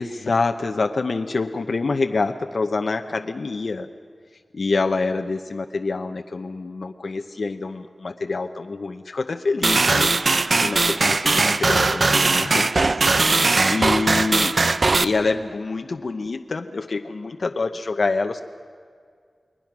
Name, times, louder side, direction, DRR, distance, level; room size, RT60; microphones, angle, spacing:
voice 1, 0.0-3.9 4.5-14.6 15.0-18.4, left 3 dB, 65° left, 6 dB, 0.9 m, -26 dB
sound 1, 9.6-15.0, right 3 dB, 55° right, 0.7 m, -19 dB
29.5 x 21.5 x 6.1 m, 2.1 s
wide cardioid pair, 75°, 0 cm